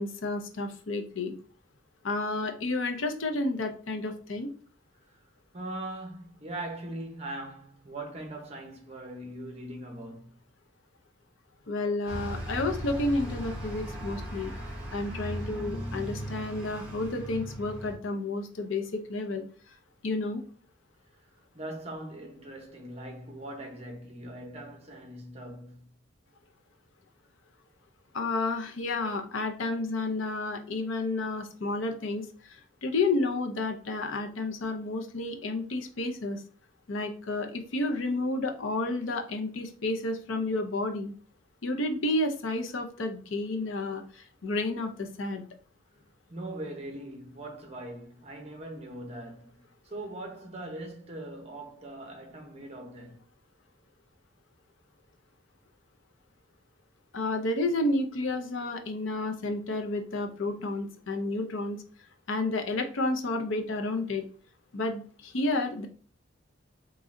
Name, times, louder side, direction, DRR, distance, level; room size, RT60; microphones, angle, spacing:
voice 1, 0.0-1.3 2.0-4.5 11.7-14.5 14.9-19.4 20.0-20.4 28.1-36.4 36.9-41.1 41.6-45.5 57.1-61.8 62.3-64.2 64.7-65.9, left 2 dB, 80° left, 0.6 m, -31 dB
voice 2, 5.5-10.4 21.5-25.8 46.3-53.2, right 1 dB, 30° right, 0.8 m, -41 dB
Bus, 12.1-18.0, equal, 5° right, 1.6 m, -37 dB
3.7 x 3.0 x 2.5 m
head